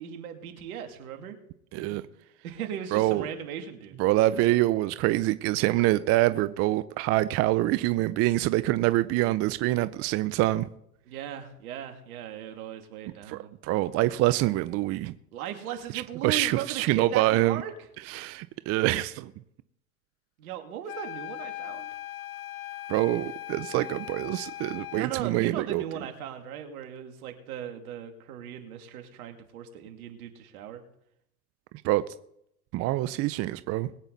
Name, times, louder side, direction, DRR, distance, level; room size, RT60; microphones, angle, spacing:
voice 1, 0.0-1.4 1.8-2.0 2.4-4.0 11.1-13.5 15.3-17.7 20.4-21.9 24.9-30.8, right 9 dB, 70° right, 2.6 m, -37 dB
voice 2, 1.7-2.0 2.9-3.3 4.0-10.7 13.3-15.1 16.2-17.6 18.1-19.3 22.9-25.8 31.8-32.0 32.7-33.9, right 17 dB, 35° right, 0.5 m, -25 dB
sound 1, 20.8-25.1, left 14 dB, 65° left, 1.4 m, -39 dB
21.5 x 8.9 x 4.0 m
hypercardioid pair, 105°, 45 cm